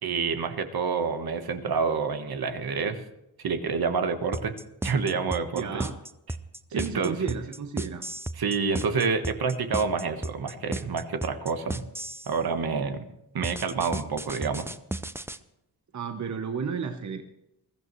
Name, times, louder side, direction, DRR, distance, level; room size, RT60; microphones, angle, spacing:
voice 1, 0.0-3.0 3.4-4.5 4.8-5.8 6.7-7.1 8.3-11.8 12.3-13.1 13.3-14.7, right 5 dB, 65° right, 8 dB, 1.4 m, -28 dB
sound 1, 4.3-12.3 13.4-15.4, right 1 dB, 5° right, 0.4 m, -34 dB
voice 2, 5.6-5.9 6.7-8.0 15.9-17.2, right 6 dB, 45° right, 6 dB, 0.9 m, -32 dB
21.5 x 14.0 x 3.1 m, 0.85 s
wide cardioid pair, 135°, 40 cm